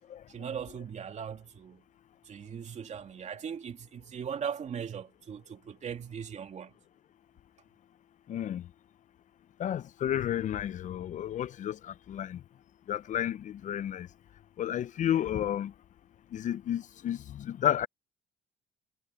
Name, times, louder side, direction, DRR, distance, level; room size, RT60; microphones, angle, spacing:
voice 1, 0.3-1.8 2.3-6.7, right 7 dB, 45° right, 2.5 m, -39 dB
voice 2, 8.3-8.7 9.6-12.4 12.9-14.1 14.6-15.7 16.3-17.9, left 11 dB, 50° left, 0.5 m, -32 dB
cardioid pair, 110°, 17 cm